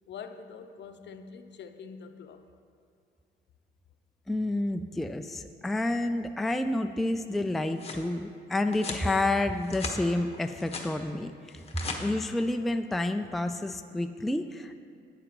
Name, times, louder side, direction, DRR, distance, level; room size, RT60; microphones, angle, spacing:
voice 1, 0.1-2.5, left 6 dB, 60° left, 8 dB, 0.7 m, -45 dB
voice 2, 4.3-11.6 12.0-14.8, left 2 dB, ahead, 7 dB, 0.3 m, -29 dB
sound 1, 7.4-8.1 8.7-9.1 9.5-10.0 10.3-10.9 11.5-12.0, left 4 dB, 30° left, 1.3 m, -38 dB
11.5 x 9.2 x 3.0 m, 2.4 s
cardioid pair, 90°, 20 cm